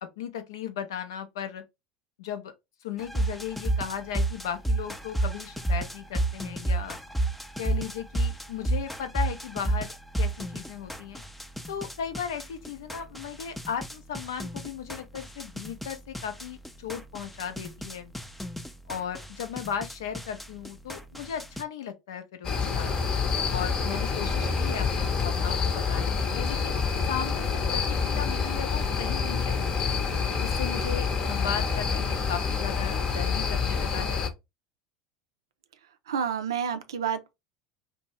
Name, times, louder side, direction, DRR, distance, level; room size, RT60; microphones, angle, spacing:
voice 1, 0.2-1.6 2.2-2.5 2.8-7.0 7.6-11.2 11.7-18.1 18.9-22.9 23.5-26.8 27.1-30.0 30.4-34.3, left 8 dB, 80° left, 0.5 m, -36 dB
sound 1, 3.0-21.6, right 2 dB, 5° left, 0.4 m, -32 dB
sound 2, 22.4-34.3, left 5 dB, 35° left, 0.7 m, -27 dB
voice 2, 36.1-37.3, right 7 dB, 85° right, 0.4 m, -29 dB
2.6 x 2.1 x 3.0 m
hypercardioid pair, 85°, 2 cm